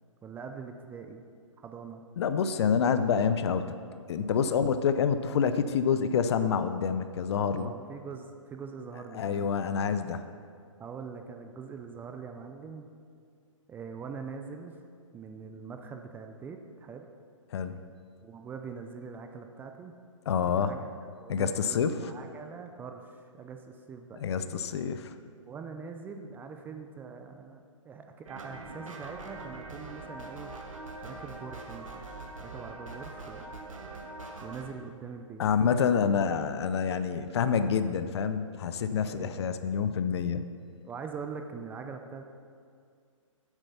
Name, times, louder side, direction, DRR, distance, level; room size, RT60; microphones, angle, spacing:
voice 1, 0.2-1.2 1.6-2.0 7.5-9.5 10.8-12.9 13.7-14.8 15.1-17.1 18.2-20.0 20.6-20.9 21.2-24.3 25.4-30.5 31.0-32.1 32.4-33.5 34.4-35.4 39.0-39.5 40.8-42.2, right 5 dB, 10° right, 5 dB, 0.5 m, -43 dB
voice 2, 2.2-3.7 4.1-7.7 9.1-10.2 17.5-17.9 20.3-20.8 21.3-22.1 24.2-25.1 35.4-40.5, left 6 dB, 55° left, 11 dB, 0.7 m, -27 dB
sound 1, 28.3-34.7, right 2 dB, 75° right, 1.6 m, -43 dB
8.9 x 8.2 x 5.6 m, 2.2 s
hypercardioid pair, 130°, 17 cm